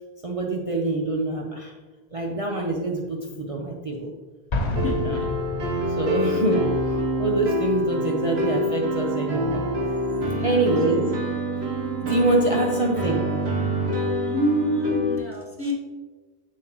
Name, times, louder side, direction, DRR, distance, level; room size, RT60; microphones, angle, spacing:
voice 1, 0.2-1.7 2.1-4.1 4.9-5.2 6.0-9.7 10.4-11.1 12.0-13.3, right 2 dB, 40° right, 0 dB, 0.7 m, -25 dB
Explosion, 4.5-6.3, left 1 dB, 45° left, 0.9 m, -28 dB
sound 1, 4.7-15.2, equal, 85° right, 1.3 m, -26 dB
voice 2, 4.8-5.3 10.3-10.7 14.2-15.7, left 1 dB, 15° left, -1 dB, 0.9 m, -27 dB
7.1 x 6.5 x 3.0 m, 1.3 s
omnidirectional pair, 1.0 m